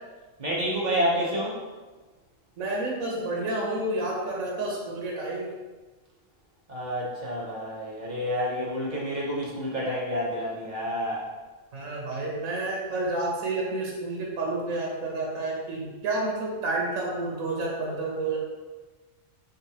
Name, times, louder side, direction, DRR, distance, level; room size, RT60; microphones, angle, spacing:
voice 1, 0.4-1.6 6.7-11.3, equal, 35° right, -5 dB, 0.9 m, -29 dB
voice 2, 2.6-5.5 11.7-18.4, right 2 dB, 90° right, -2 dB, 1.2 m, -30 dB
3.8 x 3.6 x 2.8 m, 1.3 s
omnidirectional pair, 1.4 m